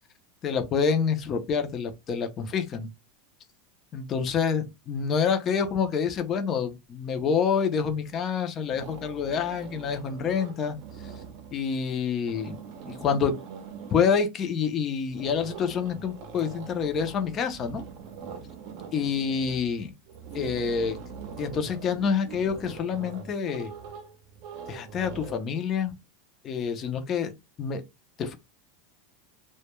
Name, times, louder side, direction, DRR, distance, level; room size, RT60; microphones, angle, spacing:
voice 1, 0.4-2.9 3.9-10.8 11.5-12.6 12.9-13.3 13.9-17.8 18.9-19.9 20.3-21.0 21.4-23.7 24.7-25.9 26.4-27.3 27.6-27.8 28.2-28.4, left 6 dB, 25° left, 0.4 m, -27 dB
sound 1, 7.9-8.3 8.6-11.7 12.1-14.3 15.1-25.4, right 6 dB, 45° right, 0.6 m, -43 dB
2.1 x 2.1 x 2.9 m
supercardioid pair, 165°, 0 cm